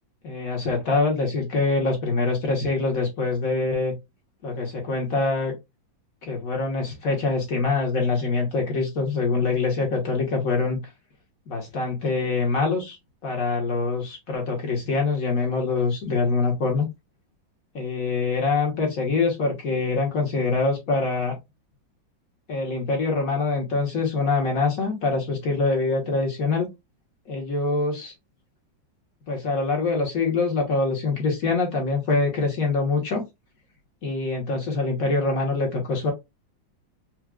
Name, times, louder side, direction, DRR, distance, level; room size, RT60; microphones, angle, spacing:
voice 1, 0.2-3.9 4.4-5.5 6.2-10.8 11.5-13.0 13.2-16.9 17.7-21.3 22.5-26.7 27.3-28.1 29.3-33.2 34.0-36.1, left 3 dB, 50° left, 2 dB, 1.5 m, -24 dB
4.7 x 2.4 x 2.4 m, 0.20 s
omnidirectional pair, 2.1 m